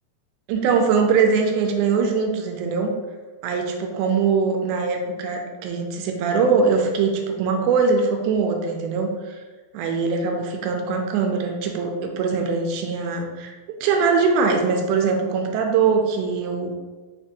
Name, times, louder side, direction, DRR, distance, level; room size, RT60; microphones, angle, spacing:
voice 1, 0.5-2.9 3.4-9.4 9.7-16.7, right 5 dB, 90° right, 3 dB, 2.1 m, -22 dB
5.3 x 3.3 x 3.0 m, 1.3 s
omnidirectional pair, 3.5 m